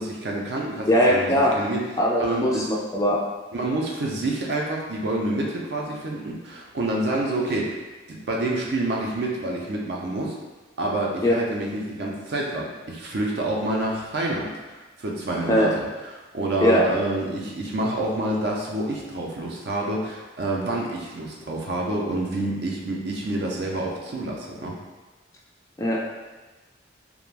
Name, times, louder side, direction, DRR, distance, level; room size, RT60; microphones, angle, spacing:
voice 1, 0.0-1.9 2.2-2.7 3.5-7.8 8.1-10.4 10.8-14.5 15.0-15.9 16.3-24.8, right 2 dB, 60° right, -2 dB, 0.5 m, -28 dB
voice 2, 0.9-1.5 2.0-3.2 11.2-11.3 15.5-15.7 16.6-16.8 25.8-26.1, equal, 15° left, -4 dB, 0.3 m, -20 dB
2.4 x 2.1 x 3.2 m, 1.2 s
head